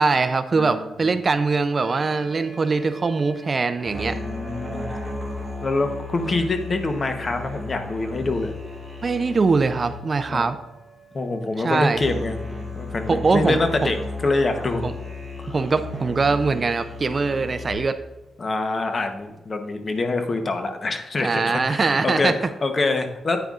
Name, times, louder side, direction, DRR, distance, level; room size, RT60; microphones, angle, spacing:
voice 1, 0.0-4.2 9.0-10.6 11.6-12.0 13.1-13.9 14.8-14.9 15.5-18.0 21.2-22.3, right 4 dB, 35° right, 11 dB, 0.4 m, -22 dB
sound 1, 1.7-17.7, left 2 dB, 5° right, 2.9 m, -35 dB
voice 2, 4.1-4.9 5.6-8.5 10.3-10.5 11.1-14.0 14.2-14.8 18.4-23.4, left 3 dB, 40° left, 6 dB, 0.9 m, -25 dB
9.0 x 8.9 x 2.4 m, 1.0 s
cardioid pair, 95°, 0 cm